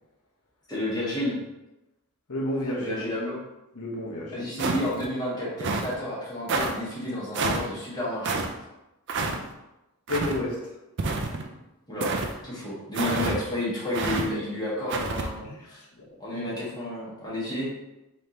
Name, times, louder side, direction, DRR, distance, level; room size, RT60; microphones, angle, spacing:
voice 1, 0.7-1.4 2.8-3.4 4.3-8.4 11.9-12.2 12.4-15.4 15.7-15.8 16.2-17.7, left 1 dB, 20° left, -8 dB, 1.5 m, -31 dB
voice 2, 2.3-3.0 3.7-4.5 10.1-10.6 15.6-15.7 16.3-16.5, left 1 dB, 90° left, -3 dB, 1.0 m, -30 dB
sound 1, 4.6-5.1 5.6-5.9 6.5-6.7 7.3-7.7 8.2-8.5 9.1-9.4 10.1-10.4 11.0-11.5 12.0-12.3 12.9-13.4 13.9-14.2 14.9-15.3, right 3 dB, 50° right, 0.4 m, -28 dB
4.8 x 3.2 x 2.9 m, 0.97 s
head